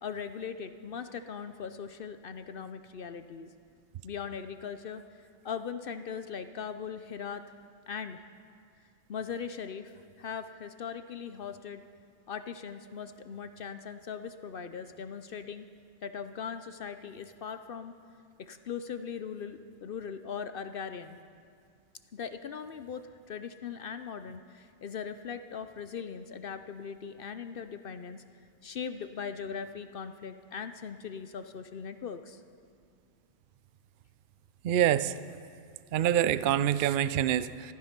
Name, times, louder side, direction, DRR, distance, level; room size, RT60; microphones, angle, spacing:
voice 1, 0.0-3.5 4.0-5.0 5.4-7.4 7.9-8.2 9.1-11.8 12.3-15.7 16.0-17.9 18.4-21.2 22.1-28.2 28.6-32.4, left 6 dB, 60° left, 10 dB, 0.6 m, -40 dB
voice 2, 34.6-35.1 35.9-37.7, right 11 dB, 80° right, 15 dB, 0.4 m, -26 dB
14.5 x 14.0 x 5.9 m, 2.3 s
omnidirectional pair, 1.4 m